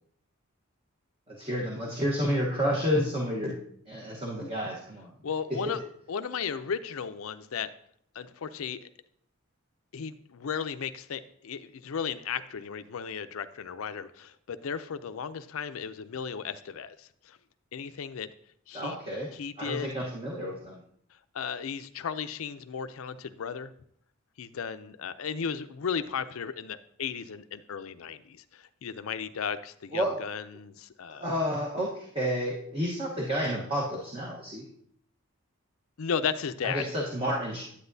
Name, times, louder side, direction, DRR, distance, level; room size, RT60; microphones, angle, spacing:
voice 1, 1.3-3.6 3.9-5.1 5.5-5.8 18.7-19.3 19.6-20.8 29.9-30.2 31.1-34.7 36.6-37.6, equal, 25° right, -3 dB, 1.1 m, -30 dB
voice 2, 5.2-5.8 6.1-7.7 8.1-8.9 9.9-17.4 17.7-18.3 18.7-19.0 19.3-19.9 21.3-23.7 24.4-31.3 36.0-36.8, left 6 dB, 75° left, 12 dB, 0.5 m, -35 dB
9.8 x 8.6 x 2.7 m, 0.66 s
head